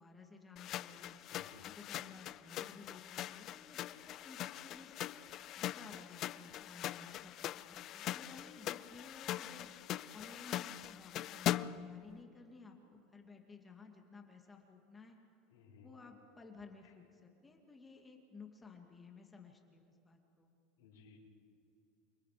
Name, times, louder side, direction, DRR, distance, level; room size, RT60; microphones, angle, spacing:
voice 1, 0.0-1.2 1.6-5.1 5.6-9.7 10.1-15.2 15.8-20.5, left 4 dB, 15° left, 2 dB, 2.3 m, -56 dB
sound 1, 0.6-11.9, left 13 dB, 45° left, 0.5 m, -42 dB
voice 2, 1.3-1.8 15.5-15.9 16.8-16.9 20.8-21.2, left 5 dB, 90° left, -8 dB, 4.9 m, -60 dB
29.0 x 23.5 x 5.1 m, 2.9 s
supercardioid pair, 125°, 0 cm